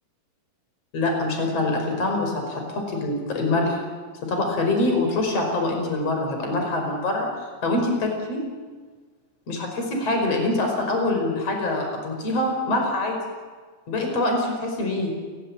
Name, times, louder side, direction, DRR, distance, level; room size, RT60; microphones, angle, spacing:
voice 1, 0.9-3.8 4.2-7.3 7.6-8.4 9.5-13.2 13.9-15.1, left 2 dB, 35° left, 2 dB, 6.0 m, -24 dB
29.0 x 17.5 x 9.1 m, 1.5 s
omnidirectional pair, 5.2 m